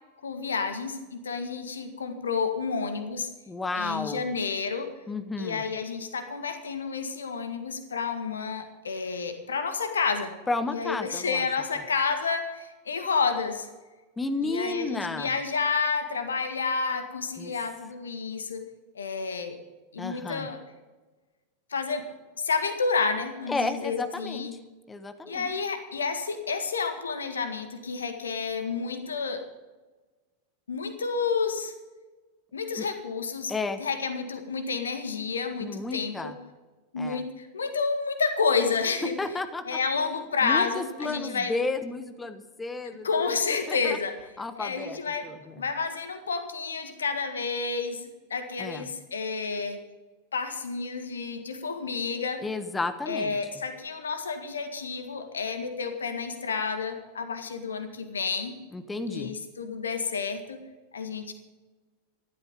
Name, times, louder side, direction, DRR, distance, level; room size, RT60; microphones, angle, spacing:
voice 1, 0.2-3.3 3.8-4.9 5.4-10.4 10.7-13.7 14.4-18.6 19.0-19.6 19.9-20.6 21.7-24.5 25.3-29.5 30.7-31.7 32.5-33.5 33.8-36.3 36.9-39.2 39.7-41.5 43.0-44.1 44.6-49.8 50.3-52.4 53.1-58.6 59.1-60.6 60.9-61.3, left 5 dB, 70° left, 8 dB, 1.8 m, -30 dB
voice 2, 3.5-4.2 5.1-5.6 10.5-11.5 14.2-15.3 17.4-17.5 20.0-20.5 23.5-24.5 24.9-25.5 32.8-32.9 33.5-33.8 35.6-36.4 37.0-37.2 39.2-39.8 40.4-43.4 43.7-44.0 44.4-45.7 48.6-48.9 52.4-53.4 58.7-59.3, left 3 dB, 10° left, 11 dB, 1.2 m, -32 dB
14.5 x 12.0 x 5.4 m, 1.2 s
figure-of-eight pair, 90°, 0 cm